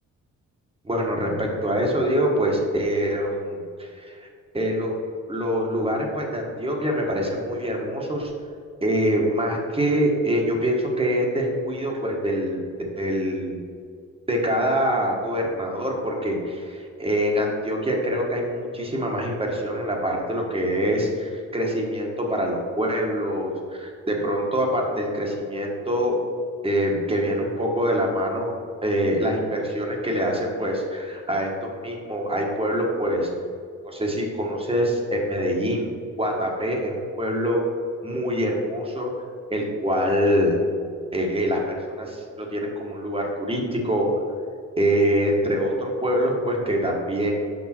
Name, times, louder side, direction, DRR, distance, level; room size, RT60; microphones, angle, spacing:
voice 1, 0.8-4.3 4.5-4.9 5.3-8.3 8.8-12.6 13.0-13.6 14.3-26.1 26.6-28.5 28.8-33.3 33.8-35.9 36.2-37.6 38.0-39.1 39.5-40.6 41.1-44.1 44.8-47.3, equal, 20° right, 0 dB, 1.5 m, -25 dB
6.3 x 5.5 x 4.5 m, 2.2 s
cardioid pair, 90°, 30 cm